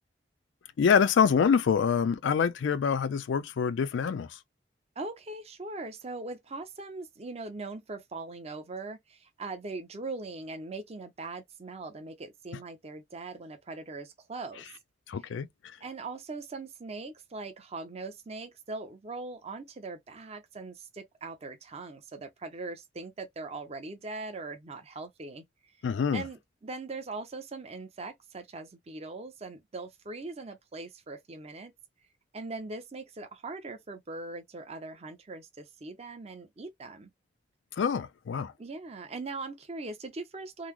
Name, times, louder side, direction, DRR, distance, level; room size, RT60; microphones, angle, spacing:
voice 1, 0.8-4.3 15.1-15.5 25.8-26.2 37.8-38.5, left 6 dB, 80° left, 0.4 m, -25 dB
voice 2, 5.0-14.7 15.1-15.3 15.8-25.4 26.1-31.7 32.3-37.1 38.6-40.7, right 3 dB, 35° right, 0.6 m, -41 dB
3.7 x 2.0 x 3.0 m
head